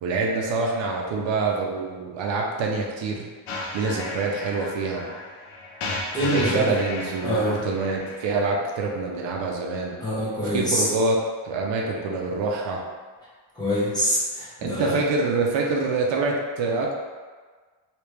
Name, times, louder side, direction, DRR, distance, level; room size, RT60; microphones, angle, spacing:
voice 1, 0.0-3.3 3.7-5.0 6.3-9.9 10.4-11.2 11.4-12.8 14.6-16.9, right 3 dB, 65° right, -1 dB, 0.7 m, -26 dB
sound 1, 3.5-8.5, left 2 dB, 85° left, 0.7 m, -34 dB
voice 2, 6.1-6.7 7.2-7.6 10.0-10.9 13.6-14.9, equal, 10° left, -9 dB, 1.1 m, -25 dB
3.1 x 2.9 x 3.3 m, 1.5 s
cardioid pair, 120°, 48 cm